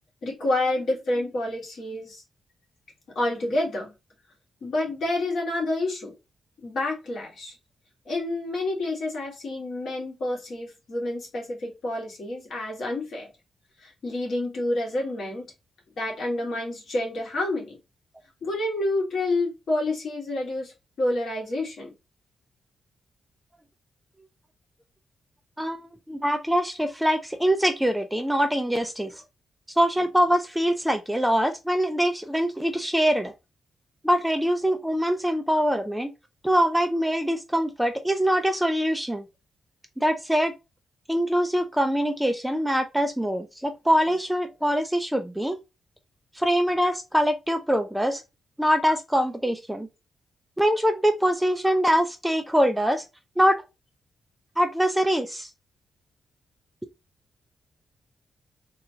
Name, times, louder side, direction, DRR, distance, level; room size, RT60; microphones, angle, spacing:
voice 1, 0.2-2.2 3.1-3.9 4.6-6.1 6.6-7.5 8.0-13.3 13.8-15.5 16.0-17.8 18.4-21.9, left 2 dB, 65° left, 1.6 m, -28 dB
voice 2, 25.6-29.1 29.8-33.3 34.0-36.1 36.4-39.2 40.0-40.5 41.1-45.6 46.4-48.2 48.6-49.9 50.6-53.0 53.4-53.6 54.6-55.5, equal, 5° right, 0.3 m, -23 dB
3.7 x 2.3 x 2.7 m
wide cardioid pair, 155°, 0 cm